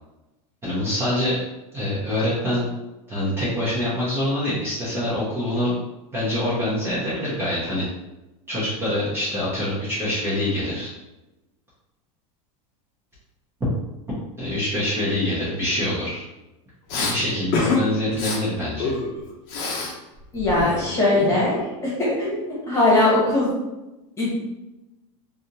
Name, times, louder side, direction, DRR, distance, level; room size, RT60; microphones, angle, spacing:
voice 1, 0.6-1.4 1.7-2.6 3.1-5.7 6.1-7.9 8.5-10.9 13.6-13.7 14.4-16.2 16.9-18.9, left 1 dB, 15° right, -10 dB, 0.9 m, -25 dB
Respiratory sounds, 16.9-17.1 17.5-17.8 18.1-18.4 18.8-19.9 20.2-21.6, left 4 dB, 45° left, 0.8 m, -27 dB
voice 2, 20.3-23.6 24.2-24.3, left 2 dB, 15° left, -7 dB, 1.3 m, -20 dB
3.3 x 2.6 x 2.8 m, 1.0 s
supercardioid pair, 155°, 17 cm